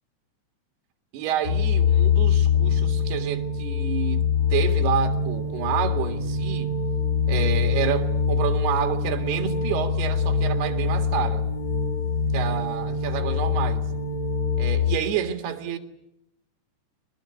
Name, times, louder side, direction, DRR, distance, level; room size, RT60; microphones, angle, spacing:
voice 1, 1.1-6.7 7.3-11.5 12.3-13.9 14.6-15.8, right 10 dB, 60° right, 3.6 m, -29 dB
sound 1, 1.4-15.0, left 6 dB, 60° left, 0.9 m, -24 dB
26.0 x 21.0 x 9.7 m
omnidirectional pair, 5.9 m